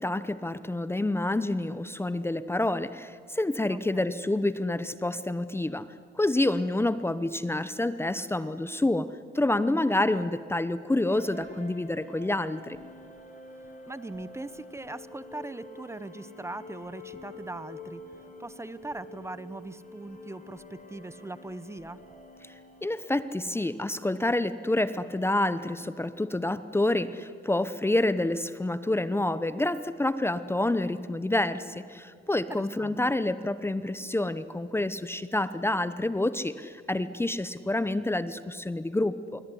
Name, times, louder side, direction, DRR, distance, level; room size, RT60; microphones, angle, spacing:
voice 1, 0.0-5.9 6.1-12.8 22.4-39.4, left 2 dB, 10° left, 14 dB, 0.9 m, -28 dB
voice 2, 3.7-4.2 9.7-9.9 13.9-18.0 18.4-22.0 32.3-33.0, right 2 dB, 15° right, 15 dB, 1.0 m, -40 dB
sound 1, 11.1-25.2, left 1 dB, 40° left, 7.0 m, -48 dB
25.5 x 23.0 x 10.0 m, 2.4 s
cardioid pair, 90°, 20 cm